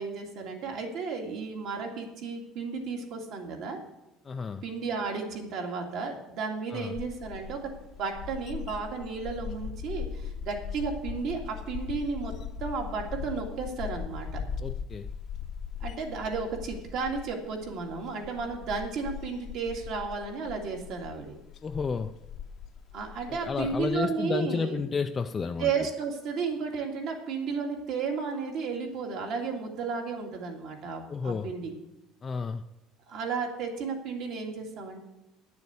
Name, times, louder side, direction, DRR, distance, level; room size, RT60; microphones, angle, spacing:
voice 1, 0.0-3.8 4.6-7.7 8.0-12.3 12.6-14.4 15.8-21.4 22.9-24.8 25.6-31.7 33.1-35.0, right 5 dB, 55° right, 2 dB, 2.3 m, -33 dB
voice 2, 4.2-4.6 6.7-7.0 14.6-15.1 21.6-22.1 23.4-25.7 31.1-31.5 32.2-32.6, left 5 dB, 20° left, 7 dB, 0.4 m, -31 dB
sound 1, 6.9-24.0, left 7 dB, 40° left, 0.7 m, -39 dB
10.5 x 6.9 x 8.2 m, 0.94 s
cardioid pair, 155°, 0 cm